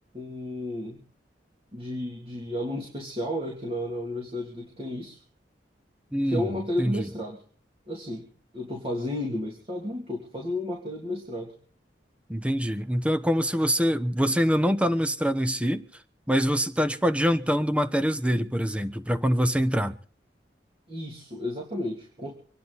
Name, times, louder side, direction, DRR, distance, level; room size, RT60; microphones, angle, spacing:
voice 1, 0.1-1.0 1.7-5.2 6.2-7.4 7.9-8.3 8.5-11.5 20.9-22.3, left 1 dB, 35° right, 3.1 m, -32 dB
voice 2, 6.1-7.1 12.3-15.8 16.3-19.9, equal, 5° right, 1.0 m, -25 dB
26.0 x 10.5 x 4.1 m
head